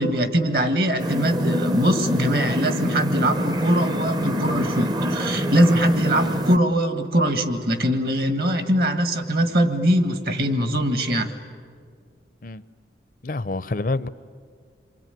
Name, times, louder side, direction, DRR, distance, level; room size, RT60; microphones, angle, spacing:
voice 1, 0.0-11.3, equal, 55° right, 1.8 m, -22 dB
sound 1, 1.0-6.6, equal, 25° right, 0.7 m, -25 dB
voice 2, 13.2-14.1, left 2 dB, 50° left, 0.6 m, -27 dB
27.0 x 23.5 x 9.2 m
head